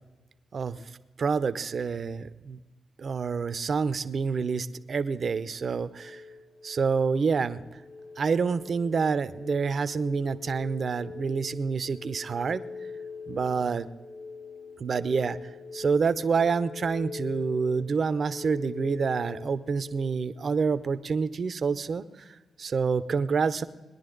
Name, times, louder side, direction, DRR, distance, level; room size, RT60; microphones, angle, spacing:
voice 1, 0.5-0.9 1.2-2.6 3.0-6.2 6.6-7.8 8.2-12.6 13.3-13.9 14.8-23.6, right 5 dB, 55° right, 14 dB, 0.7 m, -28 dB
sound 1, 5.4-20.1, left 4 dB, 55° left, 5.3 m, -43 dB
20.5 x 10.5 x 3.9 m, 1.2 s
supercardioid pair, 50°, 0 cm